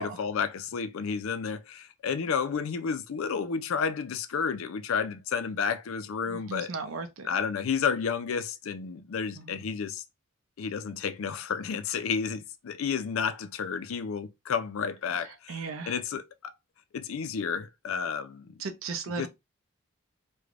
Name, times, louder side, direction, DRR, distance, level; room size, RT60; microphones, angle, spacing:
voice 1, 0.0-6.7 7.2-10.0 10.6-16.5 16.9-18.6 19.2-19.3, left 6 dB, 80° left, 0.4 m, -31 dB
voice 2, 6.3-7.3 9.4-9.6 15.5-15.9 18.6-19.3, right 4 dB, 80° right, 0.5 m, -36 dB
3.2 x 2.2 x 2.4 m
head